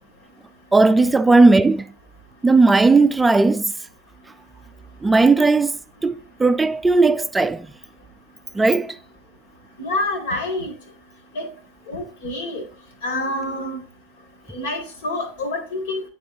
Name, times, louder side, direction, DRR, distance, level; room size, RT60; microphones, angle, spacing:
voice 1, 0.7-1.9 2.4-3.7 5.0-5.7 6.0-7.7 8.5-9.0, right 3 dB, 10° right, 0.4 m, -16 dB
voice 2, 9.8-10.7 11.3-11.5 11.9-12.6 13.0-13.8 14.5-16.1, left 2 dB, 70° left, 2.0 m, -27 dB
9.1 x 4.2 x 2.6 m
hypercardioid pair, 90°, 0 cm